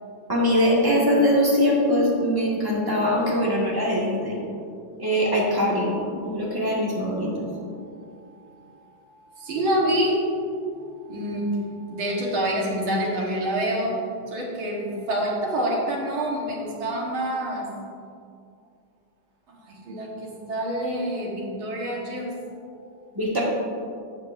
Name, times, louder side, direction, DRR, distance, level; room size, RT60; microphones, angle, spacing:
voice 1, 0.3-4.4 5.0-7.5 23.1-23.4, equal, 10° right, -5 dB, 1.7 m, -22 dB
voice 2, 6.2-6.6 7.2-10.7 11.0-14.0 14.3-17.7 19.5-22.3, right 1 dB, 85° right, -2 dB, 2.3 m, -28 dB
13.0 x 7.8 x 2.7 m, 2.4 s
omnidirectional pair, 2.2 m